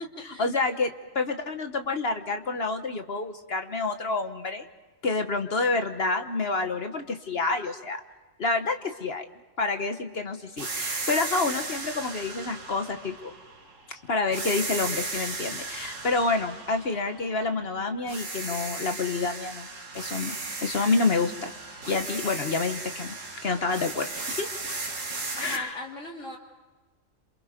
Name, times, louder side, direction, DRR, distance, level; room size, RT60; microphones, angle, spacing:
voice 1, 0.2-4.7 5.0-8.0 8.4-9.3 9.6-13.3 13.9-19.7 19.9-21.5 21.9-23.2 23.4-24.5 25.4-25.8, left 3 dB, 55° left, 7 dB, 1.3 m, -28 dB
sound 1, 10.6-13.9 14.3-17.7 18.1-25.6, right 3 dB, 85° right, 2.4 m, -36 dB
voice 2, 25.4-26.4, left 2 dB, 80° left, 0 dB, 3.5 m, -38 dB
28.0 x 27.5 x 5.1 m, 1.3 s
omnidirectional pair, 1.3 m